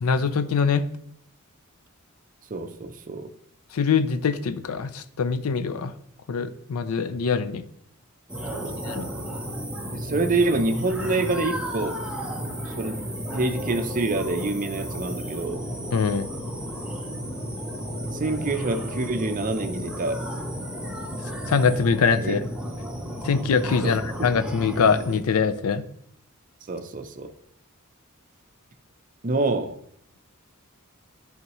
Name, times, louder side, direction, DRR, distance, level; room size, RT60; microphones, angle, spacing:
voice 1, 0.0-0.8 3.7-5.9 6.3-7.6 8.9-9.1 15.9-16.3 21.5-22.4 23.2-25.8, left 5 dB, 90° left, 0.5 m, -23 dB
voice 2, 2.5-3.3 8.5-8.8 9.9-12.0 12.8-15.6 18.1-20.2 22.2-22.4 23.8-24.0 26.7-27.3 29.2-29.8, right 3 dB, 40° right, 0.6 m, -27 dB
sound 1, 8.3-25.2, equal, 5° right, 0.7 m, -33 dB
10.5 x 3.6 x 3.0 m
head